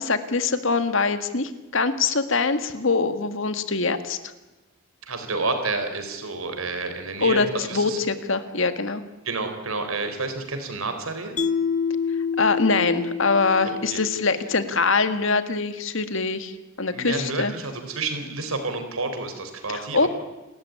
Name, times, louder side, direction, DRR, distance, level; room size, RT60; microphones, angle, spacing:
voice 1, 0.0-4.2 7.2-9.0 12.4-17.5 19.7-20.1, left 4 dB, 65° left, 10 dB, 1.8 m, -23 dB
voice 2, 5.1-8.0 9.2-11.3 13.9-14.0 16.9-20.1, right 3 dB, 85° right, 6 dB, 4.5 m, -29 dB
Mallet percussion, 11.4-14.6, left 6 dB, 35° left, 0.7 m, -28 dB
29.5 x 14.0 x 9.8 m, 1.1 s
head